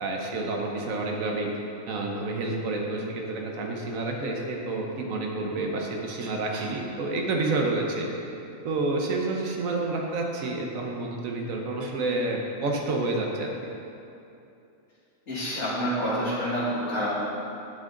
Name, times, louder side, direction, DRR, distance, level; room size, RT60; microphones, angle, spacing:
voice 1, 0.0-1.5 1.9-8.0 8.6-13.5, right 2 dB, 80° right, 0 dB, 1.4 m, -29 dB
voice 2, 15.3-16.6 16.9-17.1, equal, 60° left, -10 dB, 2.6 m, -28 dB
9.8 x 7.5 x 3.8 m, 2.7 s
omnidirectional pair, 1.4 m